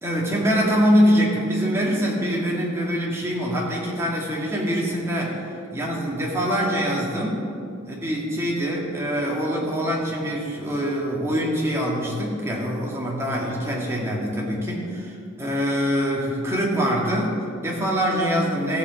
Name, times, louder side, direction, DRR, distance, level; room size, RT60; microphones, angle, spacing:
voice 1, 0.0-5.4 5.7-7.5 7.9-18.8, equal, 15° right, -4 dB, 2.0 m, -24 dB
14.5 x 7.2 x 5.3 m, 2.5 s
head